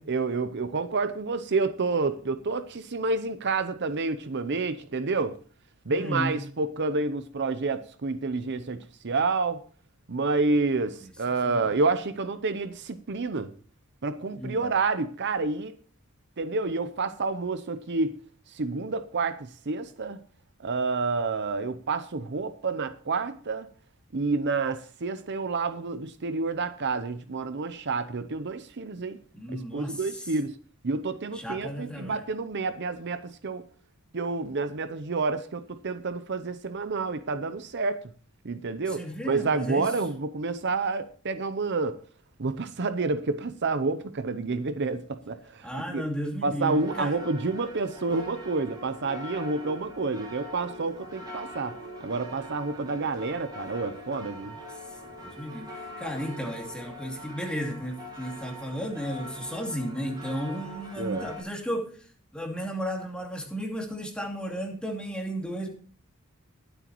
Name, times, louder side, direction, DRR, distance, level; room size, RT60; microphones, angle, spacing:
voice 1, 0.1-5.3 5.9-9.6 10.1-13.5 14.0-15.7 16.4-18.1 18.5-20.2 20.6-23.7 24.1-29.2 29.5-30.6 30.8-33.6 34.1-38.0 38.4-42.0 42.4-46.0 46.4-51.7 52.0-54.6 61.0-61.3, right 3 dB, 50° right, 11 dB, 0.7 m, -29 dB
voice 2, 5.9-6.3 11.0-11.1 11.4-11.7 14.3-14.7 29.3-30.3 31.3-32.2 38.9-39.9 45.6-47.1 55.0-62.1 62.3-65.7, equal, 5° left, 1 dB, 2.6 m, -34 dB
sound 1, 46.6-61.4, left 1 dB, 20° right, 5.1 m, -42 dB
21.0 x 8.0 x 3.0 m, 0.42 s
head